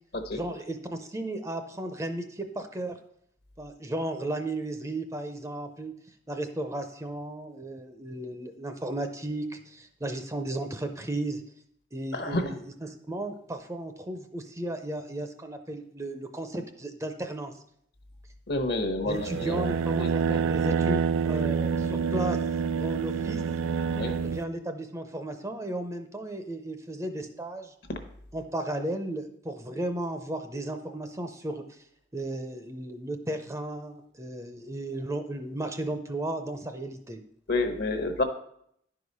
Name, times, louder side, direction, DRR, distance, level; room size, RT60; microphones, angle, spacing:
voice 1, 0.3-3.0 3.6-5.9 6.3-11.4 11.9-17.5 19.0-22.4 22.7-23.4 24.2-27.7 28.3-31.8 32.1-37.2, right 1 dB, 15° right, 7 dB, 0.6 m, -34 dB
voice 2, 12.1-12.5 18.5-19.6 20.0-20.4 23.9-24.1 37.5-38.2, left 2 dB, 55° left, 8 dB, 1.0 m, -29 dB
sound 1, 19.1-24.4, right 6 dB, 90° right, 0.4 m, -27 dB
10.5 x 4.8 x 5.4 m, 0.70 s
head